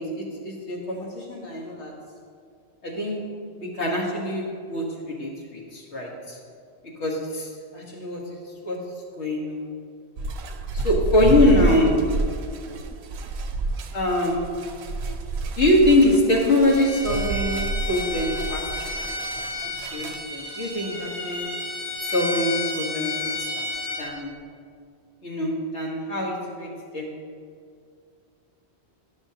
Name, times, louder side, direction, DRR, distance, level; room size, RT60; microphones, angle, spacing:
voice 1, 0.0-1.9 2.8-3.2 3.5-6.4 7.0-8.8 9.2-9.7 10.7-12.0 13.9-14.5 15.6-19.2 19.9-21.4 22.0-23.6 24.0-24.3 25.2-27.1, left 1 dB, 85° left, -3 dB, 1.7 m, -24 dB
sound 1, 10.2-20.2, right 3 dB, 75° right, 0.8 m, -29 dB
Bowed string instrument, 16.7-24.1, left 2 dB, 55° left, 1.5 m, -31 dB
11.5 x 6.2 x 2.7 m, 2.3 s
omnidirectional pair, 1.1 m